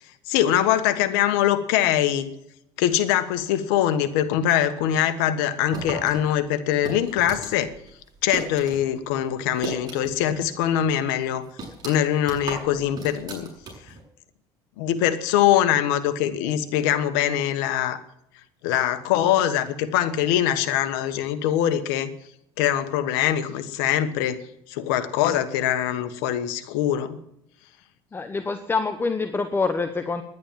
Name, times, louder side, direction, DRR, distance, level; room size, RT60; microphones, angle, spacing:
voice 1, 0.3-2.3 2.8-7.7 8.2-11.5 11.8-13.5 14.8-18.0 18.6-22.1 22.6-24.4 24.7-27.2, left 11 dB, 85° left, 11 dB, 1.4 m, -23 dB
sound 1, 5.7-8.8 9.1-10.3 10.6-10.7 11.2-14.0, right 3 dB, 35° right, 7.6 m, -36 dB
voice 2, 28.1-30.2, left 4 dB, 20° left, 9 dB, 1.0 m, -26 dB
11.0 x 10.5 x 8.8 m, 0.78 s
supercardioid pair, 100°, 12 cm